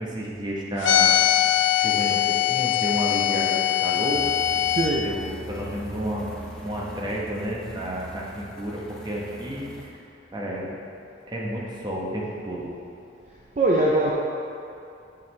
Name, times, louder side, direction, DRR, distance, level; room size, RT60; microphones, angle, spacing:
voice 1, 0.0-4.3 5.0-6.3 6.6-10.0 10.3-10.8 11.3-12.7, equal, 25° right, -4 dB, 1.0 m, -31 dB
sound 1, 0.8-4.9, left 11 dB, 80° left, 0.4 m, -22 dB
sound 2, 4.1-9.9, right 1 dB, 5° left, 0.7 m, -41 dB
voice 2, 4.7-5.1 13.6-14.1, right 1 dB, 40° right, -3 dB, 0.5 m, -21 dB
7.1 x 6.4 x 3.2 m, 2.6 s
head